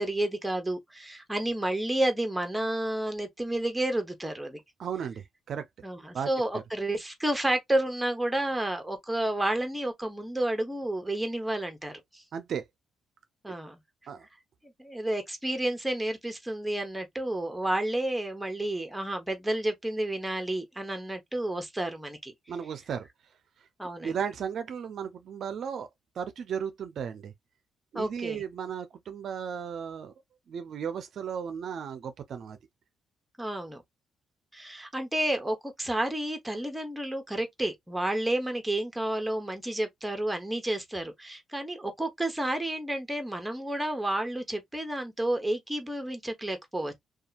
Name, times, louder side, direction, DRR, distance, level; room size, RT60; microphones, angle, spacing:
voice 1, 0.0-4.6 5.8-12.2 13.4-13.8 14.6-22.3 23.8-24.2 27.9-28.4 33.4-33.8 34.5-47.0, right 1 dB, 5° right, 0.9 m, -31 dB
voice 2, 4.8-5.6 6.1-6.3 6.5-6.6 12.3-12.6 14.1-14.3 22.5-23.1 24.0-25.9 26.2-27.3 27.9-30.1 30.5-32.6, right 7 dB, 60° right, 0.4 m, -35 dB
2.8 x 2.3 x 2.4 m
cardioid pair, 90°, 0 cm